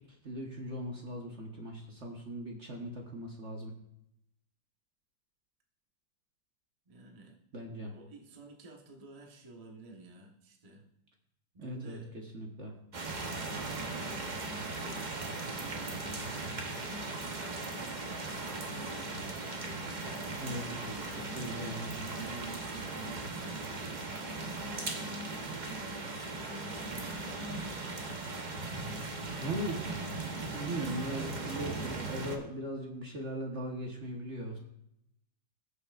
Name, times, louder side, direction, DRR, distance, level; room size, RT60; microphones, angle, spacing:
voice 1, 0.2-3.7 7.5-7.9 11.6-12.7 19.8-20.1 20.4-21.0 21.4-22.0 24.0-24.1 29.4-29.8 30.5-34.6, equal, 45° right, 0 dB, 1.1 m, -39 dB
voice 2, 6.9-7.4 7.9-10.8 11.5-12.1 13.6-15.7 16.1-19.9 20.3-28.2 30.7-32.2, right 1 dB, 25° right, 1 dB, 0.7 m, -50 dB
sound 1, 12.9-32.4, right 3 dB, 70° right, 0.4 m, -38 dB
20.0 x 6.7 x 2.4 m, 0.80 s
omnidirectional pair, 2.3 m